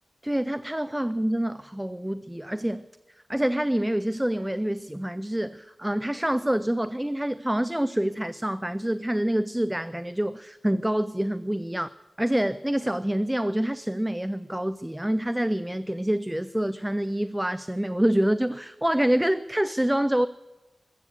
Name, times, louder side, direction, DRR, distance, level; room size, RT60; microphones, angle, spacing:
voice 1, 0.2-2.8 3.3-11.9 12.2-20.3, right 1 dB, 10° right, 0.4 m, -26 dB
20.5 x 8.4 x 8.2 m
wide cardioid pair, 80°, 0 cm